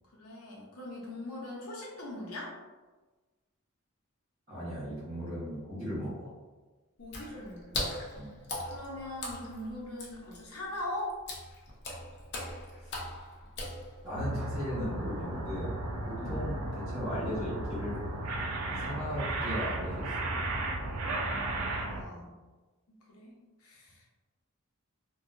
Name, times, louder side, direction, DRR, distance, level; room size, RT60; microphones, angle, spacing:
voice 1, 0.2-2.5 7.0-7.8 8.7-11.2 16.2-16.5 21.2-22.3 22.9-23.3 23.6-24.0, left 1 dB, 90° left, -3 dB, 0.8 m, -41 dB
voice 2, 4.5-6.3 8.1-8.3 12.8-13.0 14.0-15.8 16.2-18.0 18.7-20.2, equal, 30° right, -15 dB, 1.1 m, -37 dB
Water / Splash splatter, 7.0-14.2, left 1 dB, 50° left, 0.6 m, -40 dB
sound 1, 14.1-22.0, right 2 dB, 85° right, 0.4 m, -34 dB
2.7 x 2.3 x 2.6 m, 1.3 s
head